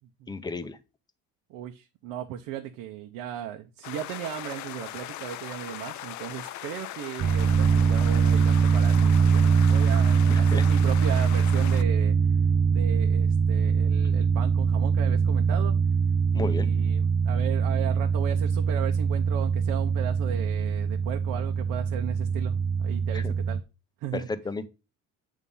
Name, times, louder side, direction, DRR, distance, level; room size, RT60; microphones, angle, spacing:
voice 1, 0.3-0.8 10.3-10.6 16.3-16.7 23.1-23.3 24.1-24.7, left 3 dB, 10° left, 10 dB, 0.7 m, -33 dB
voice 2, 1.5-12.4 12.7-15.8 16.3-23.6 24.0-24.3, right 10 dB, 80° right, 5 dB, 0.9 m, -36 dB
sound 1, 3.8-11.8, left 14 dB, 60° left, 0.6 m, -39 dB
sound 2, 7.2-23.6, right 6 dB, 35° right, 0.5 m, -23 dB
8.4 x 3.6 x 5.5 m, 0.28 s
cardioid pair, 135°, 33 cm